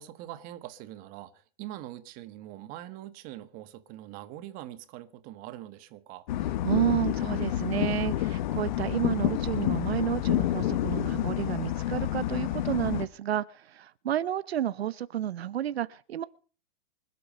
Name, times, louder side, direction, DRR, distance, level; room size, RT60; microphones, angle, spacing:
voice 1, 0.0-6.3, right 14 dB, 25° right, 1.5 m, -43 dB
sound 1, 6.3-13.1, left 13 dB, 50° left, 1.0 m, -29 dB
voice 2, 6.6-16.2, right 11 dB, 80° right, 0.9 m, -31 dB
25.5 x 8.5 x 5.4 m
hypercardioid pair, 155°, 31 cm